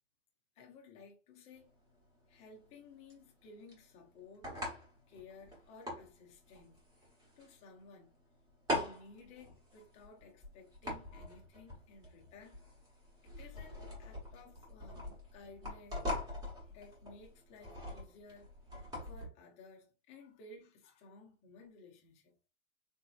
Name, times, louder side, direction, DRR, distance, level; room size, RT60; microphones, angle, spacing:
voice 1, 0.6-1.7 2.3-4.5 5.1-6.8 7.4-8.2 8.7-12.6 13.2-16.0 16.6-18.5 19.1-22.3, left 3 dB, 15° left, 0.7 m, -56 dB
sound 1, 1.5-19.3, left 1 dB, 10° right, 1.1 m, -43 dB
4.2 x 2.9 x 2.4 m
supercardioid pair, 170°, 38 cm